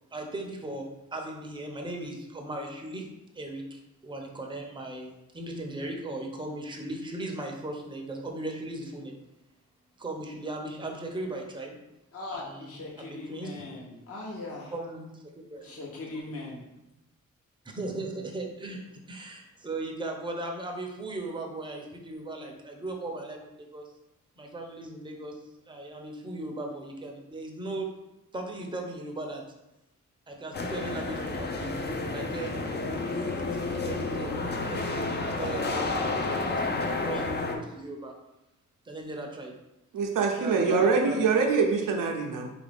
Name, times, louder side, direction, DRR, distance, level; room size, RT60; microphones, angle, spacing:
voice 1, 0.1-3.1 3.3-9.2 10.0-11.8 12.3-13.6 14.7-15.8 16.1-16.2 17.7-23.9 24.4-25.4 25.7-27.9 28.3-29.4 30.3-38.1 38.8-39.5 40.4-41.5, right 2 dB, 15° right, 1 dB, 0.6 m, -38 dB
voice 2, 12.1-14.7 15.6-16.6, left 2 dB, 50° left, -3 dB, 0.9 m, -39 dB
sound 1, 30.5-37.6, left 3 dB, 35° left, 0.5 m, -31 dB
voice 3, 39.9-42.5, right 5 dB, 80° right, 3 dB, 0.6 m, -24 dB
3.2 x 2.5 x 3.4 m, 0.92 s
cardioid pair, 70°, 32 cm